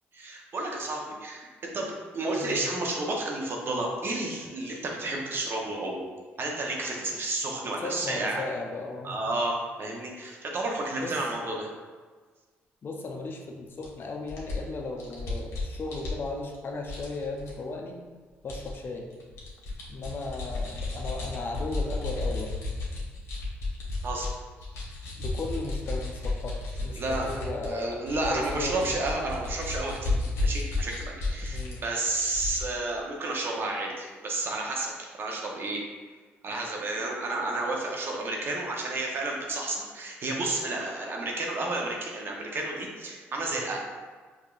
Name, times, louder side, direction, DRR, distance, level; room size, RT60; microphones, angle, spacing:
voice 1, 0.1-6.0 6.4-8.4 9.0-11.7 24.0-24.3 27.0-27.3 27.6-30.2 30.4-34.9 35.2-35.8 36.4-43.8, right 2 dB, 50° right, -1 dB, 0.8 m, -31 dB
voice 2, 2.4-2.7 7.8-9.2 11.0-11.1 12.8-18.0 18.4-19.1 19.9-22.5 25.2-28.9 31.5-31.8, left 3 dB, 50° left, 1 dB, 0.6 m, -36 dB
sound 1, 13.8-13.9 14.3-16.5 16.9-17.5 18.5-18.7 19.1-24.3 24.6-31.8 32.1-32.6, left 2 dB, 75° left, 1.0 m, -33 dB
4.8 x 2.6 x 2.4 m, 1.4 s
supercardioid pair, 70°, 5 cm